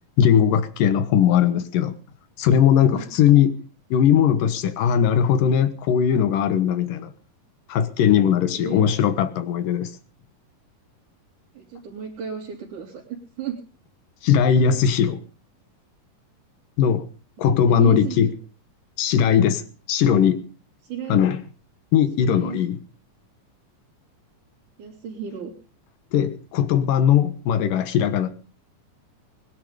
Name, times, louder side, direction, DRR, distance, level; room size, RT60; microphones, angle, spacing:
voice 1, 0.2-2.0 2.4-3.6 3.9-7.1 7.7-9.9 14.2-15.2 16.8-17.1 17.4-18.3 19.0-20.4 21.1-21.4 21.9-22.8 26.1-28.3, left 8 dB, 80° left, 2.9 m, -19 dB
voice 2, 11.5-13.6 17.4-18.2 20.9-21.2 22.2-22.6 24.8-25.5, right 7 dB, 65° right, 4.8 m, -33 dB
21.0 x 11.0 x 5.1 m
omnidirectional pair, 3.9 m